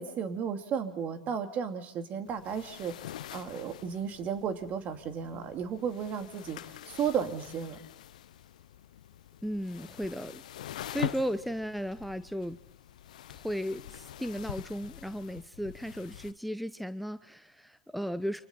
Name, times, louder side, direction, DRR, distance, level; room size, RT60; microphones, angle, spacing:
voice 1, 0.0-7.8, right 7 dB, 40° right, 7 dB, 2.4 m, -34 dB
sound 1, 2.2-16.3, left 12 dB, 75° left, 0.8 m, -45 dB
voice 2, 9.4-12.6 13.3-18.4, equal, ahead, 13 dB, 0.8 m, -35 dB
29.0 x 26.0 x 4.3 m, 0.79 s
hypercardioid pair, 90°, 4 cm